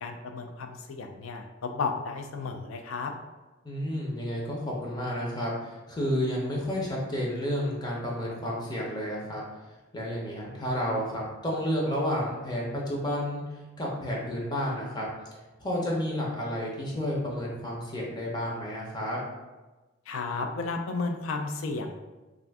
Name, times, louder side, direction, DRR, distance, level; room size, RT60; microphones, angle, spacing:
voice 1, 0.0-3.1 20.1-21.9, left 4 dB, 80° left, 4 dB, 0.4 m, -33 dB
voice 2, 3.6-9.4 9.9-13.4 13.8-15.1 15.6-19.2, equal, 20° left, -3 dB, 0.6 m, -31 dB
2.5 x 2.5 x 3.4 m, 1.2 s
head